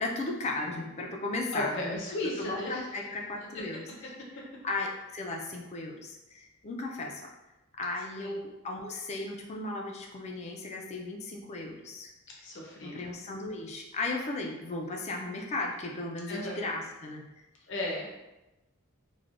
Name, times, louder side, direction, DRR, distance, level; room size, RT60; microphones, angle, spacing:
voice 1, 0.0-2.0 2.4-3.9 4.6-7.3 7.8-12.1 12.8-17.5, left 2 dB, 30° left, 1 dB, 0.3 m, -36 dB
voice 2, 1.5-3.0 3.5-3.6 8.2-8.4 12.4-13.1 16.3-16.6 17.7-18.1, left 1 dB, 60° left, -2 dB, 0.6 m, -35 dB
3.2 x 2.1 x 2.4 m, 1.0 s
head